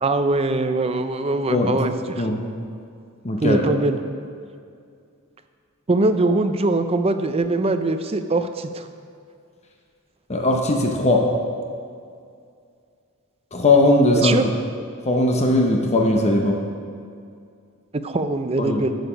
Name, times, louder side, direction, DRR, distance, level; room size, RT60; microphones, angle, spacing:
voice 1, 0.0-2.3 3.4-4.0 5.9-8.9 14.2-14.4 18.0-18.9, right 2 dB, 25° right, 8 dB, 0.5 m, -22 dB
voice 2, 3.2-3.6 10.3-11.3 13.5-14.3 15.1-16.6 18.6-18.8, left 2 dB, 30° left, 1 dB, 0.8 m, -18 dB
11.5 x 6.5 x 5.1 m, 2.3 s
head